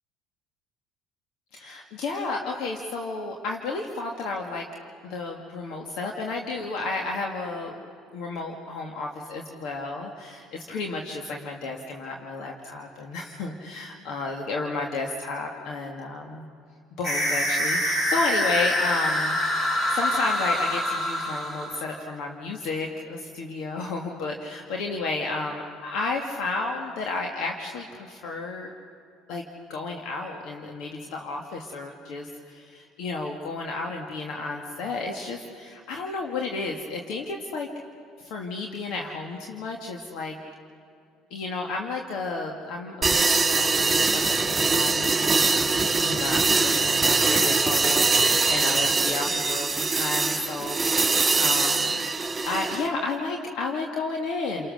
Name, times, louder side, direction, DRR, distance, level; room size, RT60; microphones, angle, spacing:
voice 1, 1.5-4.7 5.0-7.8 8.1-16.5 17.0-28.7 29.3-29.4 29.7-37.7 38.2-40.4 41.3-52.1 52.5-54.7, left 3 dB, 70° left, 1 dB, 2.0 m, -32 dB
sound 1, 17.0-21.9, left 1 dB, 45° left, 5.6 m, -25 dB
sound 2, 43.0-52.9, right 4 dB, 20° right, 2.7 m, -23 dB
30.0 x 23.5 x 6.6 m, 2.5 s
supercardioid pair, 95°, 0 cm